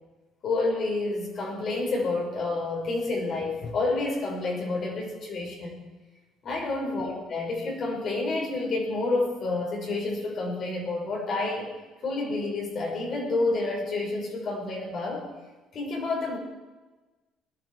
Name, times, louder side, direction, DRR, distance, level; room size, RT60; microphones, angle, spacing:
voice 1, 0.4-5.8 6.4-11.7 12.0-15.3 15.7-16.4, left 2 dB, 50° left, -1 dB, 5.4 m, -29 dB
20.0 x 11.5 x 4.8 m, 1.2 s
cardioid pair, 120°, 0 cm